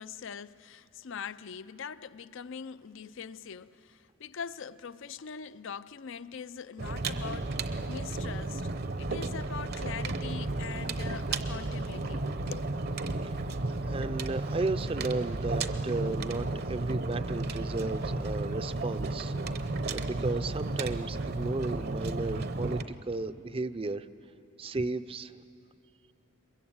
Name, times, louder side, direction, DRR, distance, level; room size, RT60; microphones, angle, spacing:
voice 1, 0.0-8.7 9.0-12.7, left 6 dB, 70° left, 0.5 m, -42 dB
sound 1, 6.8-22.8, right 2 dB, 55° right, 0.8 m, -33 dB
voice 2, 13.9-22.8 23.1-24.1 24.6-25.3, right 3 dB, 30° right, 0.5 m, -34 dB
22.5 x 22.0 x 8.7 m
head